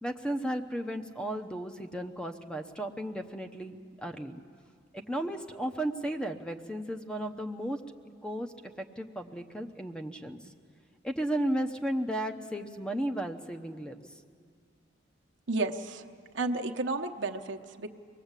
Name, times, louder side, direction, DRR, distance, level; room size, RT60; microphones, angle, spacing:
voice 1, 0.0-4.4 4.9-7.8 8.2-10.4 11.0-14.1, right 1 dB, 5° left, 6 dB, 0.9 m, -34 dB
voice 2, 15.5-16.0 16.3-17.9, right 3 dB, 70° right, 3 dB, 1.0 m, -32 dB
24.0 x 19.5 x 8.3 m, 2.1 s
head